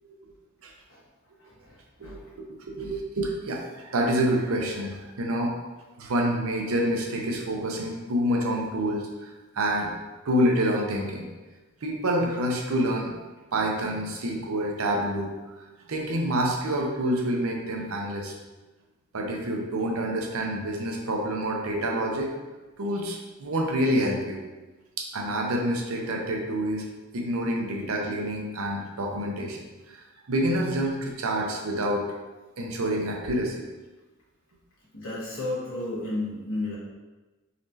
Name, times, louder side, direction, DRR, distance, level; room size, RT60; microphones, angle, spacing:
voice 1, 1.4-2.2 34.9-36.7, left 2 dB, 65° left, -7 dB, 1.5 m, -33 dB
voice 2, 2.0-5.6 6.0-9.9 10.2-11.3 11.8-13.1 13.5-15.6 15.9-18.3 19.1-22.3 22.8-24.4 25.0-26.9 27.1-32.2 32.6-33.7, right 1 dB, 80° right, 1 dB, 0.7 m, -27 dB
4.1 x 3.1 x 2.7 m, 1.2 s
head